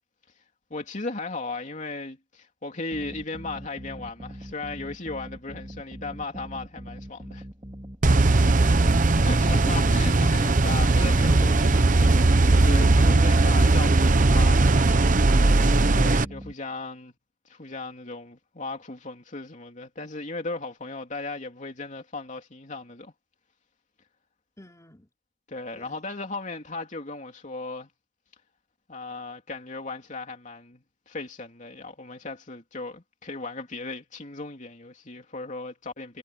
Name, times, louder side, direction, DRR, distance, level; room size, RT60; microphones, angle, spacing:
voice 1, 0.7-7.5 9.2-14.7 15.9-17.1 17.4-23.1 25.5-27.9 28.9-36.2, left 3 dB, 40° left, 3.0 m, -36 dB
sound 1, 2.9-16.5, right 1 dB, 25° right, 2.6 m, -42 dB
sound 2, 8.0-16.2, right 2 dB, 45° right, 0.9 m, -19 dB
voice 2, 9.6-9.9 14.9-15.3 24.6-25.1 25.7-25.9, left 1 dB, 15° left, 3.2 m, -47 dB
head